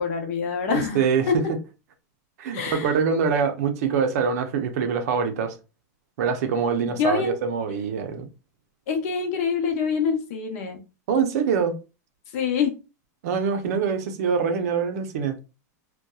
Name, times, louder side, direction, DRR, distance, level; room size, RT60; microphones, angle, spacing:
voice 1, 0.0-1.4 2.5-2.9 6.8-7.4 8.9-10.8 12.3-12.8, left 6 dB, 50° left, 0.7 m, -26 dB
voice 2, 0.7-1.3 2.4-5.6 6.2-8.3 11.1-11.8 13.2-15.3, right 6 dB, 60° right, 0.5 m, -24 dB
2.7 x 2.2 x 2.2 m
supercardioid pair, 160°, 10 cm